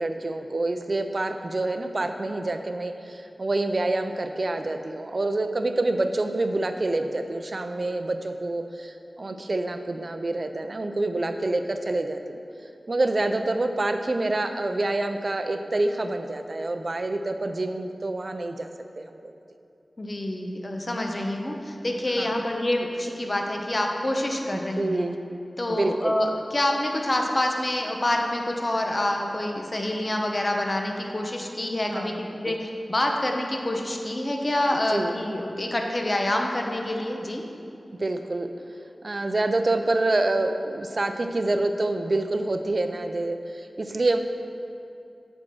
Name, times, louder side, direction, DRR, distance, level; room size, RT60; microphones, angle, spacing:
voice 1, 0.0-12.4 12.9-18.7 19.0-19.3 22.2-22.3 24.5-25.1 25.7-26.2 31.9-32.5 34.9-35.2 37.9-38.5 39.0-44.2, right 2 dB, 55° right, 7 dB, 0.5 m, -27 dB
voice 2, 20.0-25.1 25.6-37.4, left 1 dB, 45° left, 2 dB, 0.9 m, -27 dB
8.7 x 4.5 x 6.2 m, 2.6 s
cardioid pair, 40°, 0 cm